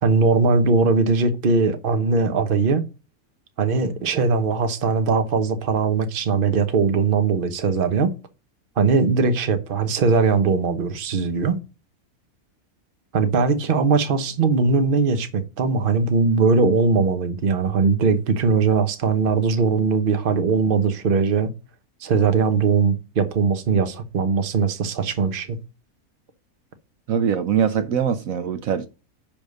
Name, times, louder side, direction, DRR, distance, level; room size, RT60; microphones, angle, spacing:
voice 1, 0.0-2.8 3.6-8.1 8.8-11.6 13.1-21.5 22.0-25.6, right 4 dB, 40° right, 1.0 m, -20 dB
voice 2, 27.1-28.9, right 8 dB, 70° right, 1.1 m, -22 dB
10.0 x 3.6 x 6.5 m
omnidirectional pair, 1.6 m